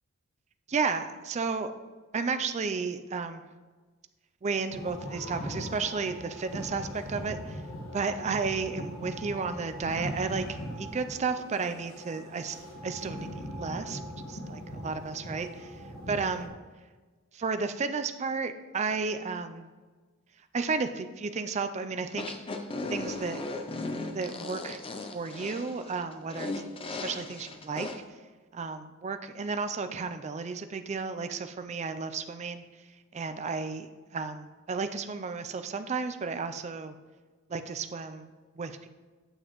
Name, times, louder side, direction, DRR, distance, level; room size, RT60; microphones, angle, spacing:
voice 1, 0.7-1.7 2.1-3.4 4.4-7.6 7.9-12.6 12.8-15.8 16.1-16.5 17.3-19.7 20.5-22.3 22.9-23.4 24.1-24.8 25.1-26.6 26.9-27.9 28.5-32.6 33.1-33.9 34.1-36.9 37.5-38.3 38.6-38.9, right 4 dB, 30° right, 9 dB, 0.4 m, -33 dB
sound 1, 4.7-16.5, equal, 65° left, 1.5 m, -40 dB
sound 2, 22.1-28.0, left 2 dB, 25° left, 0.5 m, -36 dB
8.7 x 7.0 x 3.0 m, 1.3 s
head